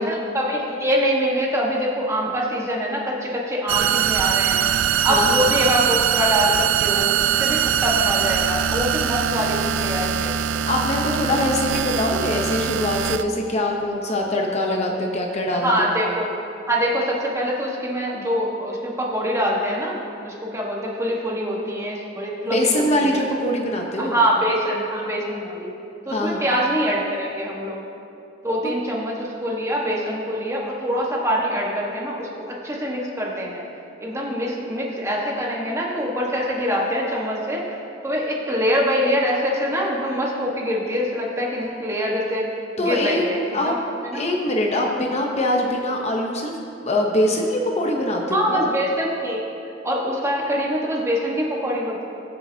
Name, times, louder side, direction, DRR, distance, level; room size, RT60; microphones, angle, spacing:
voice 1, 0.0-4.7 5.0-10.3 15.5-16.3 16.7-23.2 24.0-25.7 26.1-27.8 28.4-33.6 34.0-37.6 38.0-42.4 42.8-43.8 44.0-44.2 45.0-45.1 48.3-49.4 49.8-52.0, equal, 15° right, -3 dB, 1.4 m, -24 dB
sound 1, 3.7-13.2, right 9 dB, 75° right, 0.4 m, -22 dB
voice 2, 5.1-5.5 10.7-16.0 22.4-24.2 26.1-26.4 28.6-28.7 42.8-43.2 43.5-43.8 44.1-46.6 46.8-48.7, left 1 dB, 35° left, 0 dB, 0.9 m, -23 dB
21.5 x 7.4 x 2.8 m, 2.7 s
head